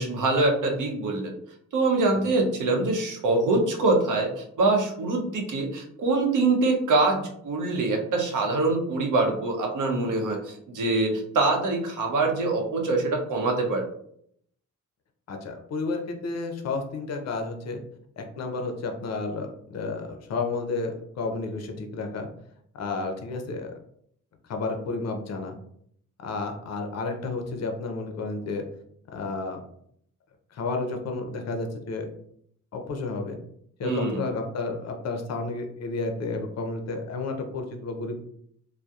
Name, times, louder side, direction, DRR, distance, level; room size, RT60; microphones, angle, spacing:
voice 1, 0.0-1.4 1.7-13.8 33.8-34.2, right 3 dB, 70° right, 2 dB, 0.6 m, -24 dB
voice 2, 15.3-17.8 18.2-22.3 22.8-23.7 24.5-25.5 26.2-28.6 29.1-29.6 30.5-32.1 32.7-33.4 33.8-38.2, left 3 dB, 55° left, 4 dB, 0.5 m, -31 dB
2.6 x 2.0 x 2.3 m, 0.68 s
cardioid pair, 80°, 32 cm